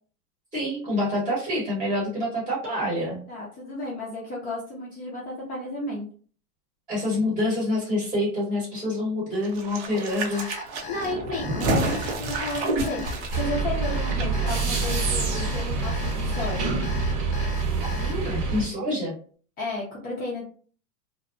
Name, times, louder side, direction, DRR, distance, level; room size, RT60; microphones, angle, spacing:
voice 1, 0.5-3.2 6.9-10.4 18.0-19.1, left 1 dB, 10° right, -5 dB, 0.9 m, -27 dB
voice 2, 3.3-6.1 10.9-13.0 13.3-16.8 19.6-20.4, left 2 dB, 20° left, -5 dB, 0.5 m, -33 dB
sound 1, 9.4-14.3 14.5-14.6, right 2 dB, 45° right, 0.6 m, -29 dB
Alarm, 10.3-18.1, left 6 dB, 85° left, 0.7 m, -39 dB
sound 2, 13.3-18.7, right 4 dB, 65° right, 1.2 m, -26 dB
2.6 x 2.0 x 2.4 m, 0.43 s
hypercardioid pair, 130°, 45 cm